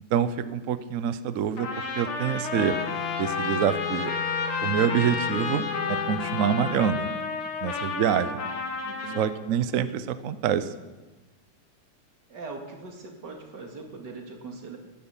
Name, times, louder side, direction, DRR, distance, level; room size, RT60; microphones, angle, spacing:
voice 1, 0.1-2.8 3.2-4.1 4.6-7.1 7.6-8.3 9.1-10.7, right 8 dB, 90° right, 13 dB, 0.7 m, -26 dB
Trumpet, 1.6-9.3, left 4 dB, 90° left, 2.6 m, -31 dB
Wind instrument woodwind instrument, 2.5-6.9, left 12 dB, 75° left, 1.2 m, -35 dB
voice 2, 8.0-8.3 8.8-9.3 12.3-14.8, right 3 dB, 55° right, 3 dB, 2.5 m, -40 dB
14.5 x 10.5 x 7.2 m, 1.2 s
omnidirectional pair, 2.4 m